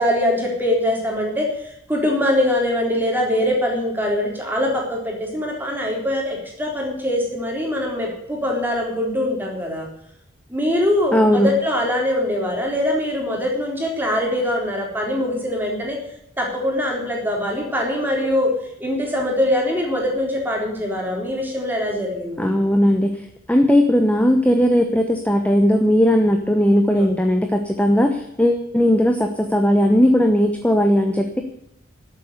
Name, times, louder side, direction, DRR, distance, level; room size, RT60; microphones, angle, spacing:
voice 1, 0.0-9.9 10.5-16.0 16.4-18.5 18.8-22.6 26.9-27.1, left 1 dB, 10° right, -1 dB, 3.7 m, -23 dB
voice 2, 11.1-11.5 22.4-23.2 23.5-31.4, equal, 5° left, 5 dB, 0.9 m, -17 dB
12.0 x 8.3 x 9.7 m, 0.76 s
head